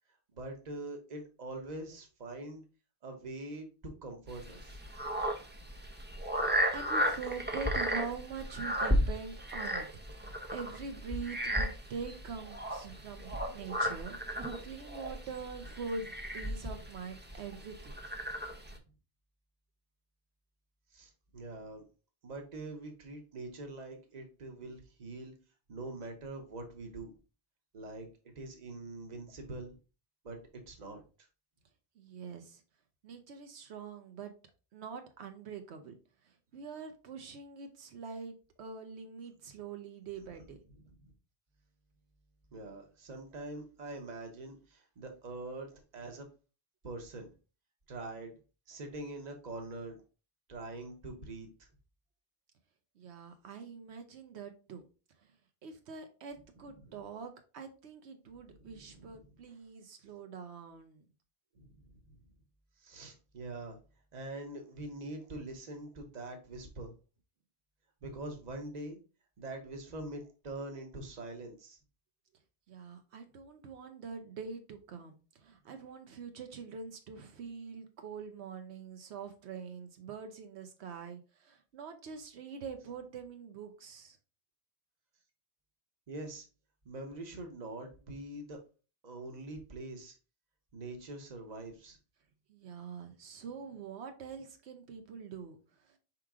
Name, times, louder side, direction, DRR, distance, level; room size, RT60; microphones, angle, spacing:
voice 1, 0.3-2.6 3.0-4.8 18.7-18.8 20.9-21.8 22.2-25.3 25.7-27.1 27.7-28.1 28.4-29.8 30.2-31.0 41.0-41.1 42.5-46.3 46.8-47.3 47.9-48.3 48.7-50.0 50.5-51.5 56.8-57.0 58.5-59.2 61.5-62.0 62.8-63.8 64.1-66.9 68.0-69.0 69.4-71.8 86.1-86.4 86.8-88.6 89.0-90.1 90.7-92.0, right 2 dB, 45° right, 4 dB, 1.0 m, -44 dB
sound 1, 4.3-18.8, equal, 15° right, 0.5 m, -34 dB
voice 2, 6.3-18.0 32.0-32.6 33.0-34.3 34.7-36.0 36.2-40.6 53.0-54.8 55.2-55.3 55.6-61.1 72.7-84.2 92.5-96.0, right 5 dB, 85° right, 6 dB, 1.0 m, -44 dB
4.8 x 3.1 x 3.6 m, 0.33 s
omnidirectional pair, 1.1 m